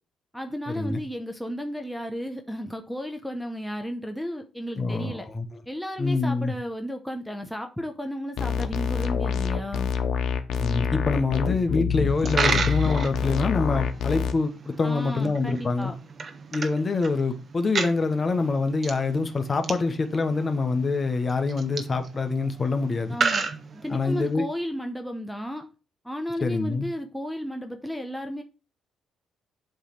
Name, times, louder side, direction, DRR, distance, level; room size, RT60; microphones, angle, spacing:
voice 1, 0.3-5.3 5.7-9.9 14.8-16.0 23.1-25.7 26.0-28.4, equal, ahead, 0.9 m, -33 dB
voice 2, 4.8-5.4 6.0-6.5 10.6-15.9 16.5-23.2 23.9-24.4 26.4-26.9, left 3 dB, 35° left, 1.2 m, -25 dB
sound 1, 8.4-14.3, left 6 dB, 75° left, 1.0 m, -26 dB
Coin (dropping), 12.1-24.3, right 5 dB, 45° right, 1.1 m, -33 dB
7.9 x 3.4 x 5.9 m
cardioid pair, 90°, 0 cm